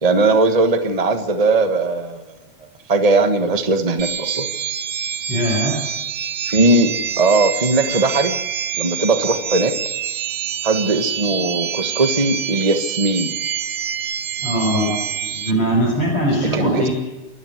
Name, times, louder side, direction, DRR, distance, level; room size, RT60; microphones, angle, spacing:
voice 1, 0.0-2.2 2.9-4.5 6.4-8.4 8.8-9.7 10.6-13.4 16.5-16.9, right 2 dB, 35° right, 8 dB, 0.5 m, -18 dB
sound 1, 4.0-15.5, right 9 dB, 60° right, 2.4 m, -26 dB
voice 2, 5.3-5.8 14.4-16.9, right 1 dB, 45° left, -5 dB, 7.0 m, -21 dB
28.5 x 12.5 x 8.1 m, 1.1 s
omnidirectional pair, 3.4 m